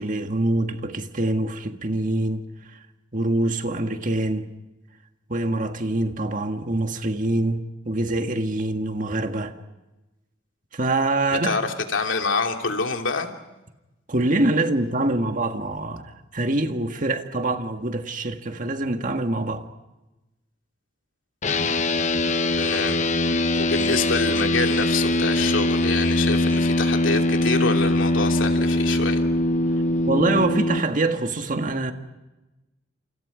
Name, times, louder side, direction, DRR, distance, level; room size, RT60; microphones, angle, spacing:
voice 1, 0.0-2.4 2.7-2.8 3.1-4.5 5.3-9.5 10.7-11.5 14.1-19.6 30.1-31.9, right 2 dB, 45° right, 1.8 m, -25 dB
voice 2, 11.4-13.3 22.6-23.1 23.5-29.2, left 4 dB, 80° left, 2.8 m, -26 dB
sound 1, 21.4-30.8, left 1 dB, 40° left, 0.9 m, -22 dB
30.0 x 28.5 x 5.1 m
head